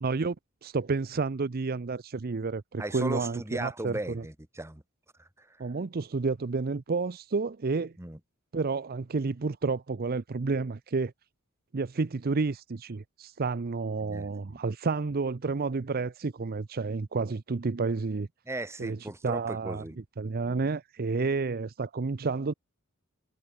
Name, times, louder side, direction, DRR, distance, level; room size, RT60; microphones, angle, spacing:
voice 1, 0.0-0.4 0.6-4.2 5.6-8.0 8.5-11.1 11.7-18.3 18.8-19.0 19.2-19.8 20.2-22.5, right 4 dB, 45° right, 0.6 m, -30 dB
voice 2, 2.8-4.8 5.2-5.6 8.0-8.2 14.0-14.6 18.5-20.0, right 1 dB, 10° right, 1.3 m, -37 dB
head